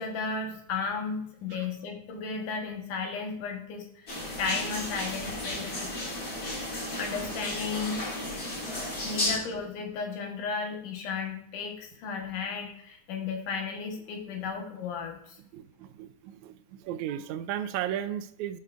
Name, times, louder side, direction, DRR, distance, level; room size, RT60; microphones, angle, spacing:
voice 1, 0.0-5.9 6.3-6.4 7.0-8.1 9.0-15.4, left 5 dB, 80° left, 2 dB, 2.8 m, -34 dB
sound 1, 4.1-9.4, left 1 dB, 30° left, 2.4 m, -34 dB
voice 2, 15.5-18.6, right 11 dB, 80° right, 10 dB, 1.8 m, -35 dB
13.0 x 5.6 x 2.5 m, 0.68 s
omnidirectional pair, 3.6 m